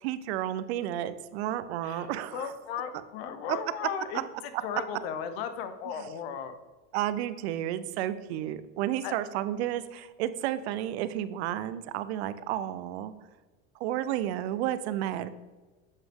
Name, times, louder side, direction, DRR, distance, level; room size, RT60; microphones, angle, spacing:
voice 1, 0.0-2.5 3.5-3.6 6.0-6.1 6.9-13.1 13.8-15.3, right 12 dB, 70° right, 14 dB, 0.5 m, -32 dB
voice 2, 2.3-4.2 4.6-6.5 9.0-9.1 11.3-11.4, left 7 dB, 65° left, 10 dB, 0.8 m, -36 dB
7.6 x 5.8 x 3.6 m, 1.2 s
supercardioid pair, 175°, 33 cm